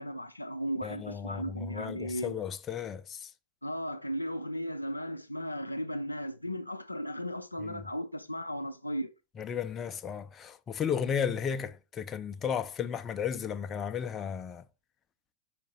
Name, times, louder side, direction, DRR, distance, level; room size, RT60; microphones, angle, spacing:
voice 1, 0.0-2.4 3.6-9.1, equal, 85° left, 0.4 m, -36 dB
voice 2, 0.8-3.3 7.7-7.8 9.4-14.6, left 7 dB, 25° left, 0.5 m, -34 dB
5.1 x 4.6 x 4.1 m
figure-of-eight pair, 90°, 0 cm